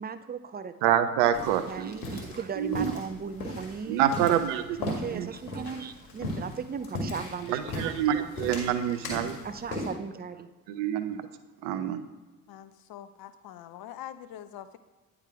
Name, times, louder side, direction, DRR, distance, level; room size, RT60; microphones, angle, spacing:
voice 1, 0.0-0.9 1.6-4.1 4.8-8.7 9.4-10.5, right 6 dB, 20° right, 11 dB, 0.5 m, -37 dB
voice 2, 0.8-2.2 2.6-2.9 3.9-5.3 7.5-9.4 10.7-11.3 11.6-12.0, right 10 dB, 70° right, 10 dB, 0.7 m, -27 dB
sound 1, 1.3-9.9, left 2 dB, 80° left, 1.6 m, -38 dB
voice 3, 12.5-14.8, left 11 dB, 55° left, 12 dB, 0.7 m, -44 dB
9.0 x 3.6 x 4.7 m, 1.3 s
hypercardioid pair, 45°, 44 cm